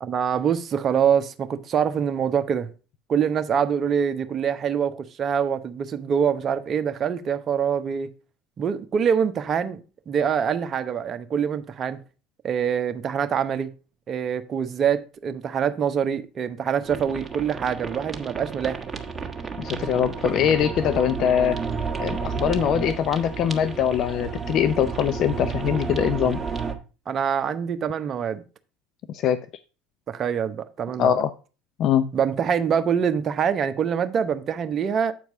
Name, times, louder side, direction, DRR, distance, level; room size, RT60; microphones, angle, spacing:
voice 1, 0.0-2.7 3.1-8.1 8.6-9.8 10.1-12.0 12.4-13.7 14.1-18.8 27.1-28.4 30.1-31.2 32.1-35.1, right 7 dB, 40° right, 0.9 m, -25 dB
sound 1, 16.8-26.7, right 5 dB, 20° right, 1.5 m, -31 dB
voice 2, 19.6-21.6 22.0-26.4 29.1-29.4 31.0-31.3 31.8-32.1, left 9 dB, 50° left, 0.5 m, -22 dB
8.4 x 4.6 x 5.3 m
hypercardioid pair, 75°, 0 cm